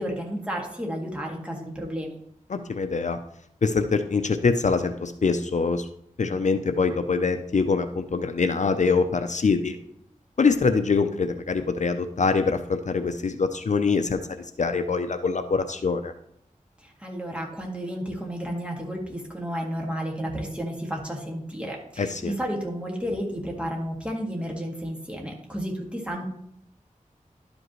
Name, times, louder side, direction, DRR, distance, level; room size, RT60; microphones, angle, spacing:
voice 1, 0.0-2.2 16.8-26.2, equal, 10° right, -1 dB, 1.9 m, -32 dB
voice 2, 2.5-3.2 3.6-5.9 6.2-9.8 10.4-14.2 14.6-16.1 22.0-22.3, left 4 dB, 60° left, 8 dB, 0.5 m, -24 dB
12.0 x 5.2 x 3.1 m, 0.72 s
wide cardioid pair, 60°, 14 cm